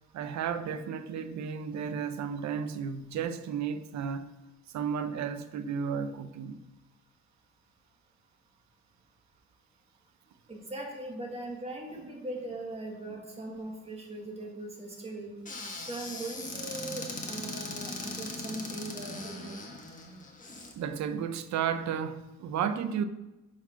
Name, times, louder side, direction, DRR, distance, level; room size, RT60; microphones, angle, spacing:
voice 1, 0.1-4.3 4.7-6.6 20.8-23.0, right 7 dB, 65° right, 0.7 m, -33 dB
voice 2, 10.5-15.4 15.9-19.6, right 2 dB, 20° right, 1.6 m, -40 dB
Squeak / Cupboard open or close, 15.4-20.7, left 2 dB, 25° left, 1.4 m, -39 dB
9.5 x 4.9 x 5.8 m
cardioid pair, 170°, 29 cm